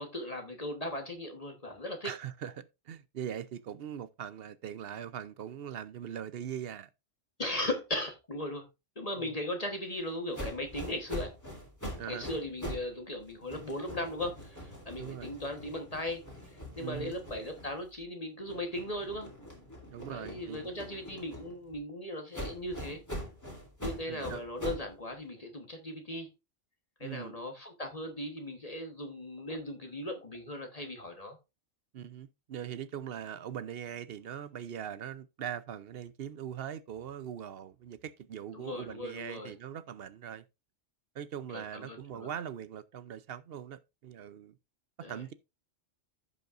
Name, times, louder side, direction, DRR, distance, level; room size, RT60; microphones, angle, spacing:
voice 1, 0.0-2.1 7.4-8.6 9.0-11.3 12.1-16.2 16.5-19.3 20.1-23.0 23.8-26.3 27.0-31.4 38.5-39.5 41.5-42.3 45.0-45.2, left 1 dB, 30° left, 1.3 m, -38 dB
voice 2, 2.0-6.9 9.2-9.4 12.0-12.3 15.0-15.3 16.8-17.1 19.9-20.7 24.1-24.4 27.0-27.4 31.9-40.4 41.1-44.6 45.1-45.3, right 9 dB, 60° right, 0.7 m, -41 dB
sound 1, 10.3-12.9 13.2-18.0 18.4-21.8 22.3-24.9, equal, 15° left, 3.0 m, -43 dB
15.0 x 5.5 x 2.5 m
omnidirectional pair, 1.2 m